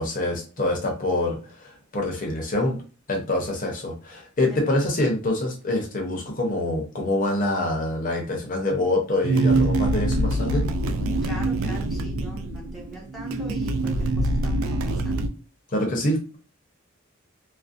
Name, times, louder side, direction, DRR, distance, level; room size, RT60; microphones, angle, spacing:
voice 1, 0.0-2.8 3.1-10.6 15.7-16.4, left 1 dB, 40° left, 0 dB, 0.6 m, -25 dB
sound 1, 9.2-15.3, right 2 dB, 75° right, 0.3 m, -24 dB
voice 2, 11.2-15.2, right 1 dB, ahead, -4 dB, 0.5 m, -41 dB
2.4 x 2.0 x 2.4 m, 0.38 s
head